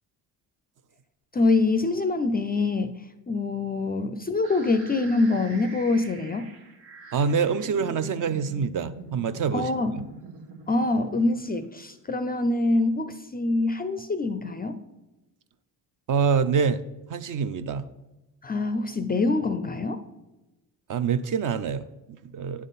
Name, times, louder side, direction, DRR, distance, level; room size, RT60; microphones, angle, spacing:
voice 1, 1.3-2.9 3.3-6.5 9.5-9.9 10.7-14.8 18.4-20.0, left 3 dB, 25° left, 11 dB, 0.3 m, -25 dB
sound 1, 4.4-12.3, right 4 dB, 80° right, 1.2 m, -44 dB
voice 2, 7.1-9.7 10.0-10.1 16.1-16.8 17.1-17.8 20.9-22.7, right 6 dB, 45° right, 12 dB, 0.5 m, -26 dB
9.4 x 3.7 x 4.1 m, 1.0 s
supercardioid pair, 55°, 45 cm